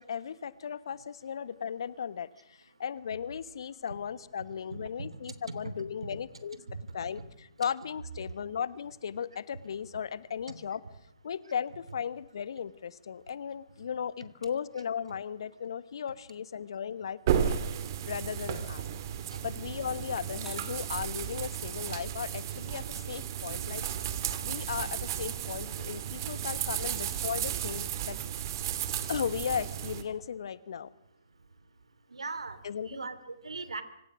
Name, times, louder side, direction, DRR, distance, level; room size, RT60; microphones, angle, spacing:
voice 1, 0.0-6.6 6.9-10.8 11.2-17.6 18.1-18.8 19.4-23.8 24.4-28.2 29.1-30.9 32.6-32.9, left 7 dB, 55° left, 16 dB, 1.3 m, -36 dB
sound 1, 17.3-30.0, right 10 dB, 40° right, 2.7 m, -34 dB
sound 2, 18.3-18.7 19.9-20.8 21.2-22.7 23.2-23.8, equal, ahead, 6.7 m, -57 dB
voice 2, 32.1-32.6 32.9-33.8, right 3 dB, 75° right, 13 dB, 3.0 m, -39 dB
25.5 x 25.0 x 6.2 m, 0.80 s
figure-of-eight pair, 130°, 3 cm